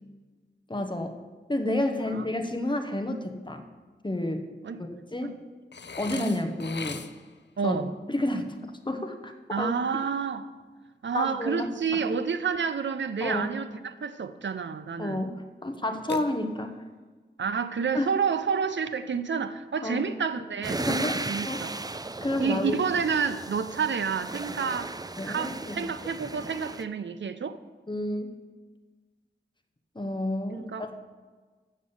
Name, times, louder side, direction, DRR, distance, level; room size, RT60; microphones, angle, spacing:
voice 1, 0.7-1.2 1.5-3.6 4.0-4.5 4.8-5.3 6.0-7.0 7.6-7.8 8.1-8.6 8.8-9.7 11.1-11.7 13.2-13.6 15.0-15.3 15.6-16.8 17.9-18.1 19.8-20.0 20.8-21.6 21.9-22.8 25.2-25.9 27.9-28.3 29.9-30.9, left 1 dB, 25° left, 1.1 m, -30 dB
Burping eructation, 5.7-7.4 16.1-16.9, left 5 dB, 70° left, 0.6 m, -39 dB
voice 2, 7.6-7.9 9.5-10.5 11.0-15.3 17.4-21.7 22.4-24.9 25.2-27.6 30.5-30.9, right 6 dB, 85° right, 0.5 m, -29 dB
sound 1, 20.6-26.8, right 2 dB, 20° right, 0.4 m, -36 dB
8.2 x 7.3 x 7.1 m
wide cardioid pair, 80°, 19 cm